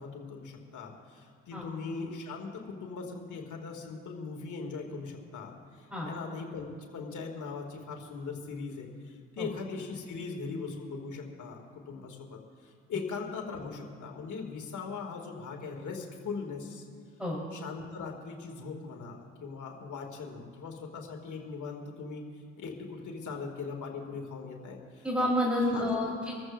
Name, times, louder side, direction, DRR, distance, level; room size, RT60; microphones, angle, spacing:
voice 1, 0.0-16.9 17.5-22.2 22.6-25.1 25.7-26.1, left 4 dB, 50° left, 2 dB, 2.6 m, -40 dB
voice 2, 25.0-26.3, left 1 dB, 5° right, -4 dB, 4.1 m, -29 dB
26.5 x 14.0 x 2.6 m, 2.2 s
hypercardioid pair, 50°, 38 cm